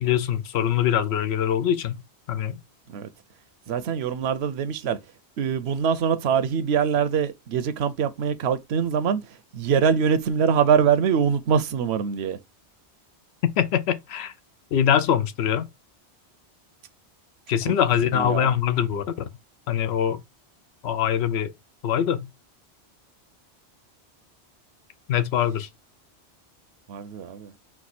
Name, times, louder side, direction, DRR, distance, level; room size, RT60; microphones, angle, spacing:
voice 1, 0.0-2.0 2.3-2.6 13.4-14.3 14.7-15.7 17.5-19.0 19.7-20.2 20.8-21.5 21.8-22.3 25.1-25.7, left 9 dB, 75° left, 0.8 m, -23 dB
voice 2, 3.7-5.0 5.4-9.2 9.5-12.4 17.6-17.7 18.1-18.5 26.9-27.5, right 7 dB, 75° right, 0.8 m, -23 dB
4.4 x 2.4 x 4.1 m
omnidirectional pair, 1.1 m